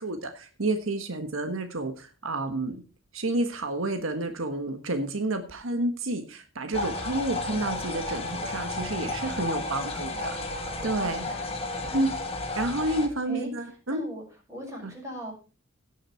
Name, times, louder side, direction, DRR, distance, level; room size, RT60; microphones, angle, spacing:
voice 1, 0.0-2.8 3.1-11.3 11.9-12.1 12.5-14.0, right 2 dB, 90° right, 7 dB, 1.4 m, -30 dB
sound 1, 6.7-13.1, left 2 dB, 30° left, 1.8 m, -32 dB
voice 2, 9.8-10.4 11.0-11.6 11.9-12.1 13.3-13.5 13.9-14.2 14.5-15.3, equal, 15° right, -2 dB, 5.9 m, -40 dB
17.0 x 6.5 x 4.5 m, 0.35 s
head